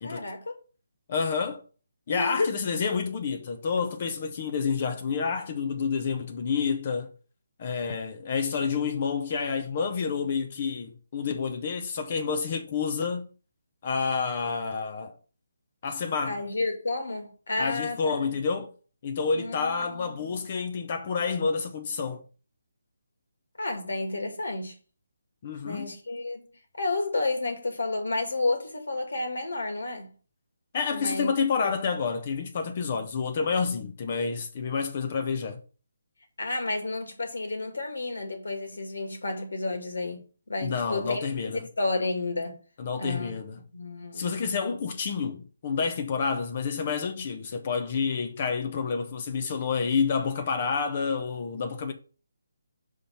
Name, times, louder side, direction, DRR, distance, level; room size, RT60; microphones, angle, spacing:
voice 1, 0.0-0.5 2.1-2.5 16.2-18.2 19.3-20.5 23.6-24.8 25.6-26.5 26.8-30.1 30.9-31.3 31.6-31.7 36.4-42.6 43.0-43.3 43.7-44.3, left 2 dB, 75° left, 2.2 m, -31 dB
voice 2, 1.1-1.6 2.1-7.1 7.6-13.2 13.8-15.1 15.8-16.4 17.6-18.7 19.0-22.2 25.4-25.9 30.7-35.6 40.6-41.6 42.8-43.6 44.1-51.9, left 5 dB, 40° left, 0.9 m, -29 dB
5.6 x 4.9 x 5.8 m
figure-of-eight pair, 155°, 0 cm